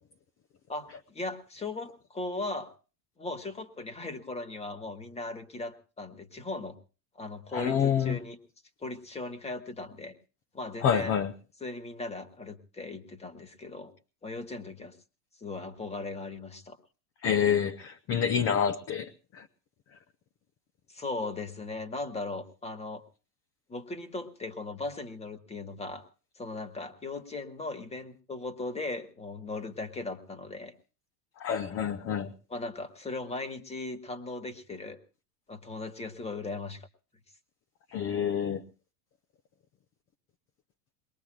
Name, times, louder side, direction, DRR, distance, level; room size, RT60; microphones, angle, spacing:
voice 1, 0.7-2.7 3.2-6.7 7.1-8.4 8.8-10.1 10.5-11.1 11.6-13.9 14.2-15.0 15.4-16.8 20.9-23.0 23.7-26.0 26.3-30.7 32.5-35.0 35.5-36.9, left 2 dB, 15° left, 11 dB, 1.6 m, -38 dB
voice 2, 7.5-8.2 10.8-11.3 17.2-19.5 31.4-32.3 37.9-38.6, left 8 dB, 30° left, 8 dB, 0.8 m, -27 dB
22.0 x 21.0 x 2.4 m, 0.36 s
supercardioid pair, 140°, 46 cm